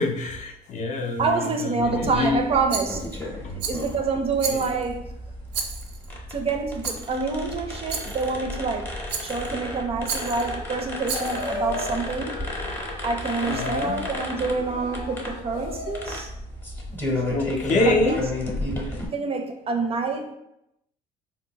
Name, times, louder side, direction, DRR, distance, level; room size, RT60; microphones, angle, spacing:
voice 1, 0.0-2.4 3.4-3.6 4.5-4.7 13.5-14.1 17.3-18.3 18.8-19.0, left 2 dB, 45° left, 3 dB, 0.5 m, -26 dB
voice 2, 1.2-3.0 3.7-5.0 6.3-8.9 9.2-12.4 13.0-16.3 17.9-18.2 19.1-20.3, right 4 dB, 35° right, 4 dB, 0.4 m, -27 dB
sound 1, 1.8-19.1, left 1 dB, 10° left, 0.7 m, -33 dB
Rattle, 2.7-3.2 3.6-4.0 4.4-4.9 5.5-6.1 6.8-7.1 7.9-8.3 9.1-9.5 10.0-10.5 11.0-11.5, right 6 dB, 85° right, 0.5 m, -32 dB
sound 2, 10.0-16.2, left 3 dB, 85° left, 0.6 m, -35 dB
3.6 x 2.2 x 2.8 m, 0.83 s
cardioid pair, 110°, 17 cm